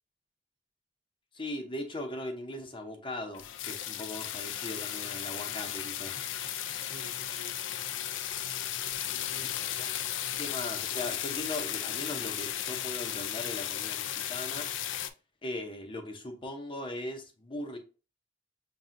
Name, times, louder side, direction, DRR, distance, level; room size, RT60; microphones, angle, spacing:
voice 1, 1.3-6.3 9.8-9.9 10.4-14.7 15.4-17.8, left 1 dB, 25° left, 0.6 m, -39 dB
sound 1, 3.3-15.1, left 11 dB, 80° left, 0.4 m, -35 dB
voice 2, 6.1-7.6 9.0-9.6 10.4-10.5, right 1 dB, 70° right, 0.8 m, -51 dB
5.5 x 2.7 x 2.5 m
head